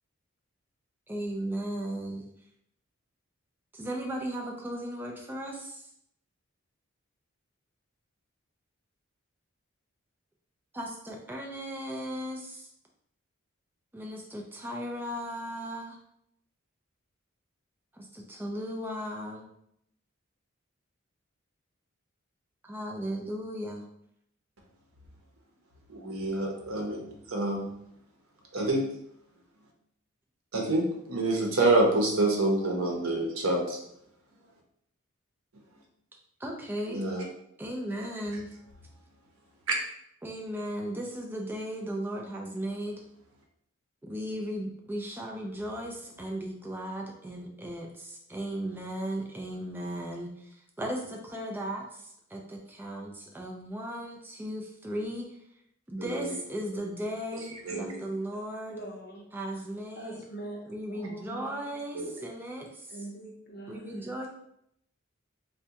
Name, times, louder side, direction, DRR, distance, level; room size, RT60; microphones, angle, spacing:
voice 1, 1.1-2.3 3.7-5.9 10.7-12.7 13.9-16.0 17.9-19.5 22.6-23.9 36.4-37.0 37.6-38.5 40.2-43.0 44.0-55.4 55.9-58.8 59.3-60.2 60.7-63.1 63.7-64.3, equal, 10° right, 0 dB, 0.3 m, -36 dB
voice 2, 25.9-27.7 28.5-28.9 30.5-33.8 36.9-37.2 39.7-39.8 56.0-56.3 57.7-57.9 61.9-62.1, right 2 dB, 85° right, 0 dB, 0.7 m, -27 dB
voice 3, 57.7-58.1 58.7-59.2 59.9-60.6 60.9-61.7 62.9-64.1, right 2 dB, 50° left, -1 dB, 0.7 m, -43 dB
3.4 x 2.1 x 2.8 m, 0.75 s
head